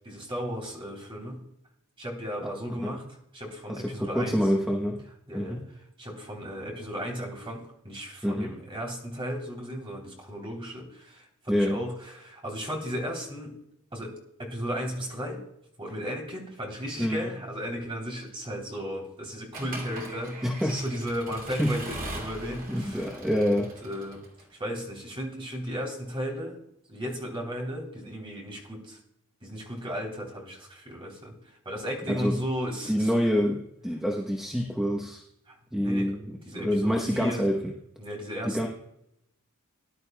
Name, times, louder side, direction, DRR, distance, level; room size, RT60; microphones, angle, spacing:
voice 1, 0.0-1.4 2.0-4.4 5.3-5.6 6.0-13.6 13.9-15.4 15.8-23.1 23.5-26.6 26.9-29.0 29.4-33.1 35.5-36.1 36.4-37.5 38.0-38.6, equal, 25° right, 0 dB, 3.3 m, -35 dB
voice 2, 3.7-5.0 5.3-5.6 8.2-8.5 11.5-11.8 17.0-17.3 20.4-20.8 21.6-21.7 22.7-23.7 32.1-32.4 32.9-35.2 35.7-37.6 38.4-38.7, equal, ahead, 0 dB, 0.9 m, -27 dB
Accelerating revving vroom / Mechanisms, 19.5-24.4, right 1 dB, 40° right, 2.7 m, -41 dB
19.5 x 11.0 x 2.3 m, 0.79 s
head